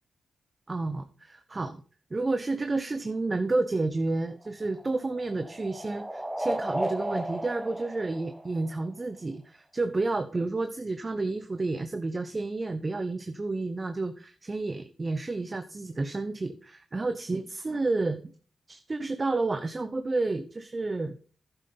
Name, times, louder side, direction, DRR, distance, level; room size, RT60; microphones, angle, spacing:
voice 1, 0.7-1.8 2.1-18.3 18.7-21.2, right 3 dB, 35° right, 10 dB, 0.8 m, -30 dB
sound 1, 4.3-9.0, right 1 dB, 10° right, 1.3 m, -35 dB
11.0 x 8.0 x 4.0 m, 0.41 s
supercardioid pair, 45°, 0 cm